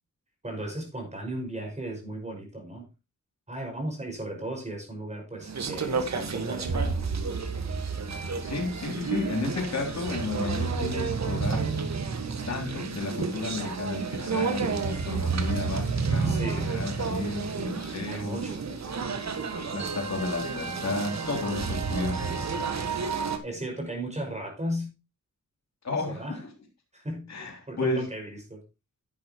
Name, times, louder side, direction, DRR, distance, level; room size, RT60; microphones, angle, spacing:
voice 1, 0.4-2.9 3.5-7.0 16.2-16.7 18.1-18.7 23.4-24.9 26.1-26.4 26.9-27.3 27.7-28.6, right 1 dB, 25° right, 5.9 m, -36 dB
sound 1, 5.4-23.4, right 5 dB, 65° right, 1.6 m, -30 dB
voice 2, 8.4-11.7 12.5-18.4 19.5-22.4 25.8-26.4 27.3-28.0, left 3 dB, 65° left, 3.4 m, -32 dB
11.0 x 10.0 x 3.0 m
wide cardioid pair, 125°, 30 cm